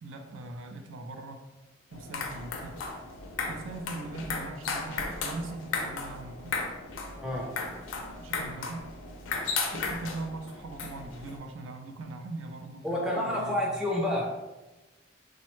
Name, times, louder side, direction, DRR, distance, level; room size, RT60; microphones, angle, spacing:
voice 1, 0.0-1.5 1.9-2.8 3.5-6.6 8.2-8.8 9.7-13.8, right 2 dB, 70° right, 5 dB, 0.3 m, -40 dB
sound 1, 1.9-11.4, left 4 dB, 75° left, 0.5 m, -35 dB
voice 2, 7.2-7.5 12.8-14.4, left 1 dB, 5° right, -3 dB, 0.5 m, -29 dB
3.1 x 2.1 x 3.0 m, 1.1 s
head